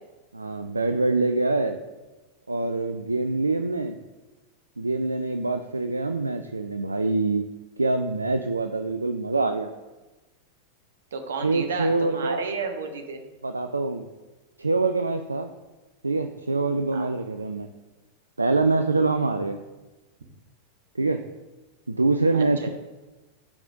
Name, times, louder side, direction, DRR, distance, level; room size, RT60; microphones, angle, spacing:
voice 1, 0.3-1.8 2.5-4.0 4.8-7.4 7.8-9.7 11.4-12.5 13.4-14.0 14.6-15.5 16.0-17.7 18.4-19.6 21.0-21.2 21.9-22.7, right 3 dB, 80° right, 7 dB, 0.3 m, -25 dB
voice 2, 11.1-13.2 16.9-17.1 22.3-22.4, right 5 dB, 65° right, 6 dB, 0.9 m, -32 dB
10.5 x 4.9 x 2.6 m, 1.1 s
figure-of-eight pair, 90°, 0 cm